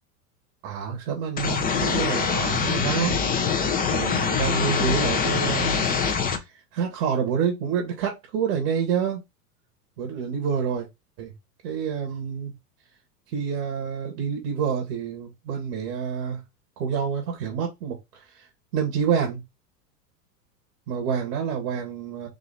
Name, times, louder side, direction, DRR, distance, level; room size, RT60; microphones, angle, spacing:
voice 1, 0.6-3.2 3.9-5.9 6.2-6.5 6.7-9.2 10.0-10.9 11.2-11.3 11.6-12.5 13.3-16.4 16.8-18.5 18.7-19.4 20.9-22.3, right 7 dB, 65° right, 1.7 m, -28 dB
sound 1, 1.4-6.4, left 6 dB, 20° left, 0.8 m, -24 dB
3.9 x 2.8 x 4.1 m
hypercardioid pair, 110°, 48 cm